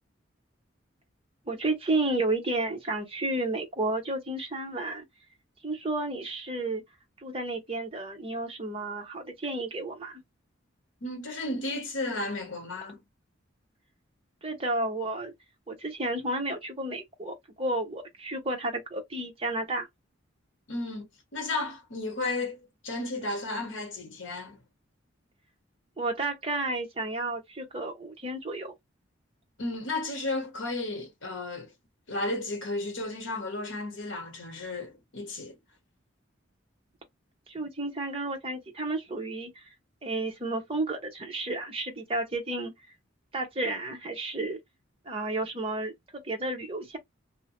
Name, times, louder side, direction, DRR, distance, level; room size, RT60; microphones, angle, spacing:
voice 1, 1.5-5.0 5.6-6.8 7.2-10.2 14.4-15.3 15.7-19.9 26.0-28.7 37.5-39.6 40.0-42.7 43.3-44.6 45.1-47.0, right 2 dB, 30° right, 0.8 m, -32 dB
voice 2, 11.0-13.0 20.7-24.6 29.6-31.7 32.1-35.6, left 2 dB, 70° left, 0.9 m, -33 dB
2.6 x 2.1 x 2.9 m
head